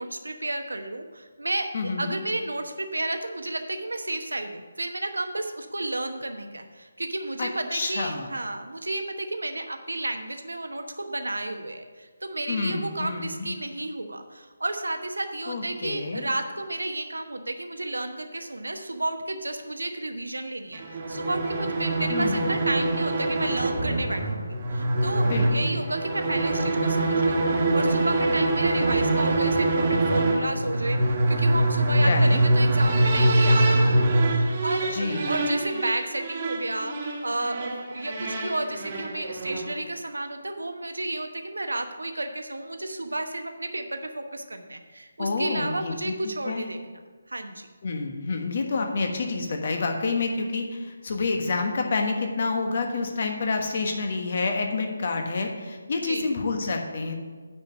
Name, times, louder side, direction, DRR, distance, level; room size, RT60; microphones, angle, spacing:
voice 1, 0.0-36.9 37.2-47.0 47.3-47.7 55.9-56.3, right 2 dB, 80° right, 6 dB, 1.0 m, -32 dB
voice 2, 1.7-2.2 7.4-8.3 12.5-13.6 15.5-16.2 22.1-22.6 25.2-25.8 32.0-32.4 34.9-35.3 45.2-46.7 47.8-57.2, left 3 dB, 50° left, 3 dB, 1.3 m, -28 dB
sound 1, 20.7-39.8, right 1 dB, 35° right, 1.5 m, -24 dB
9.2 x 5.0 x 7.0 m, 1.5 s
figure-of-eight pair, 150°, 0 cm